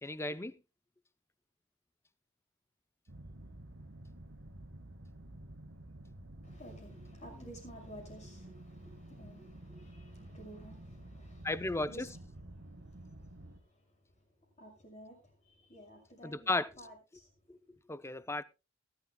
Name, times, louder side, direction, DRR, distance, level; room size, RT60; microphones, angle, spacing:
voice 1, 0.0-0.5 11.4-11.9 16.2-16.7 17.5-17.6 17.9-18.4, left 2 dB, 15° left, 0.5 m, -34 dB
sound 1, 3.1-13.6, right 1 dB, 60° right, 1.4 m, -51 dB
voice 2, 6.4-17.8, right 1 dB, 35° left, 6.2 m, -54 dB
20.0 x 12.0 x 2.2 m
head